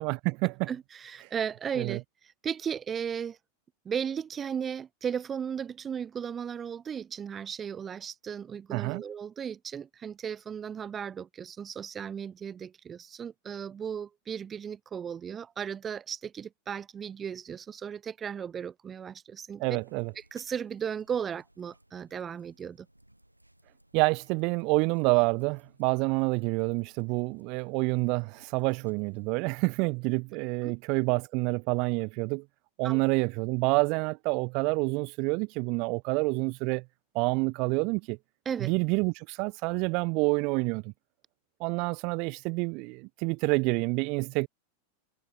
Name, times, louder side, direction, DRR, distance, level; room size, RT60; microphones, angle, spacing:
voice 1, 0.0-0.7 1.8-2.0 8.7-9.0 19.6-20.1 23.9-32.4 32.8-36.8 37.1-38.2 38.6-40.9 41.6-44.5, right 30 dB, 45° right, 0.4 m, -28 dB
voice 2, 0.7-2.0 2.4-3.4 3.8-19.8 20.3-22.9 30.6-30.7 32.8-33.0 38.4-38.7, right 7 dB, 20° right, 1.1 m, -35 dB
sound 1, 19.8-29.8, right 1 dB, 85° right, 3.5 m, -63 dB
figure-of-eight pair, 90°, 0 cm